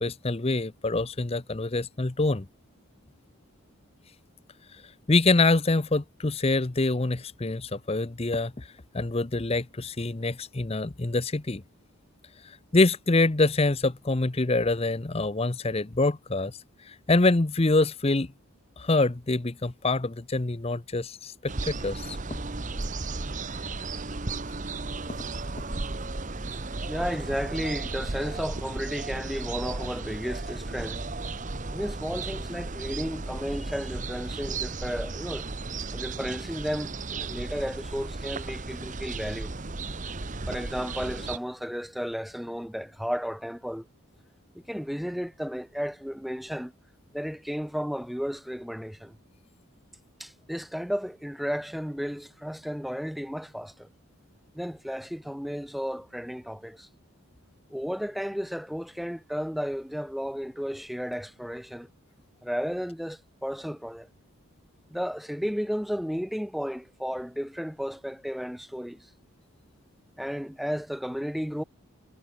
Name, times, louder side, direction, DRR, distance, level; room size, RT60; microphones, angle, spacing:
voice 1, 0.0-2.5 5.1-8.6 8.9-11.6 12.7-16.5 16.9-18.3 18.8-21.3 21.7-22.2, left 2 dB, 25° left, 0.7 m, -25 dB
sound 1, 21.5-41.4, right 3 dB, 35° right, 1.1 m, -35 dB
voice 2, 26.9-31.0 31.7-35.5 35.9-39.5 39.8-40.1 40.5-43.9 44.5-46.7 47.1-49.2 50.2-53.9 54.5-56.9 57.7-61.9 62.4-64.1 64.9-69.1 70.2-71.6, equal, ahead, 0.3 m, -33 dB
head